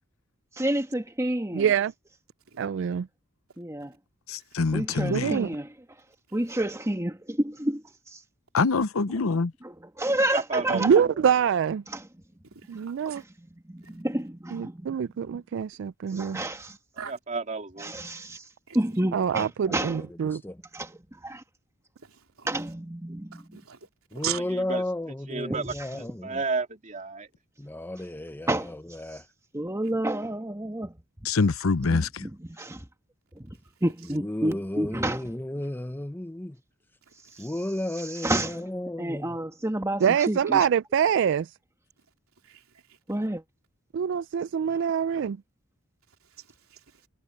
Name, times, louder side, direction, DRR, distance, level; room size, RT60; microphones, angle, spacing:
voice 1, 0.6-1.7 3.6-3.9 4.7-5.7 6.3-7.8 8.1-8.2 9.6-10.9 11.9-12.0 13.6-14.9 15.2-15.3 16.1-16.8 17.8-18.4 18.7-19.5 19.7-20.0 20.7-21.4 22.5-23.5 28.5-28.7 29.5-31.0 31.9-32.8 33.4-35.4 37.4-37.5 38.2-38.6 39.0-40.6 43.1-43.4, right 1 dB, 15° right, 1.7 m, -30 dB
voice 2, 1.5-1.9 2.6-3.1 5.1-5.5 10.7-11.8 12.7-13.2 14.5-16.4 19.1-20.4 40.0-41.5 43.9-45.4, right 8 dB, 60° right, 0.3 m, -25 dB
voice 3, 4.3-5.4 8.5-9.5 31.2-32.3, left 4 dB, 80° left, 0.7 m, -25 dB
voice 4, 10.3-11.1 17.1-17.9 24.7-24.8 25.3-27.3, right 4 dB, 35° right, 3.1 m, -32 dB
voice 5, 12.5-13.2 17.0-17.2 18.7-18.8 22.0-22.6 23.3-24.4 37.1-37.5 42.4-43.0 46.2-47.1, right 9 dB, 85° right, 3.4 m, -40 dB
voice 6, 19.3-20.6 24.1-26.4 27.6-29.3 34.1-36.6 37.4-39.4, left 1 dB, 10° left, 0.6 m, -34 dB
head